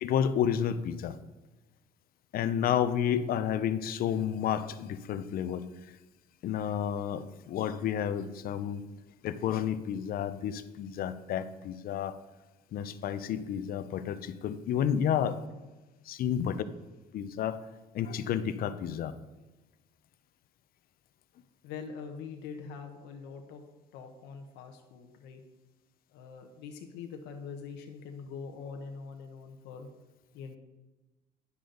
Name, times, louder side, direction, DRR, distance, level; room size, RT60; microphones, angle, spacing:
voice 1, 0.0-1.2 2.3-5.6 6.4-8.8 9.2-12.1 12.7-15.4 16.1-16.4 17.1-17.6 17.9-19.1, left 9 dB, 60° left, 12 dB, 0.6 m, -31 dB
voice 2, 21.6-23.6 23.9-25.4 26.1-29.9 30.3-30.6, left 6 dB, 90° left, 4 dB, 0.9 m, -43 dB
9.5 x 6.9 x 3.8 m, 1.1 s
cardioid pair, 110°, 17 cm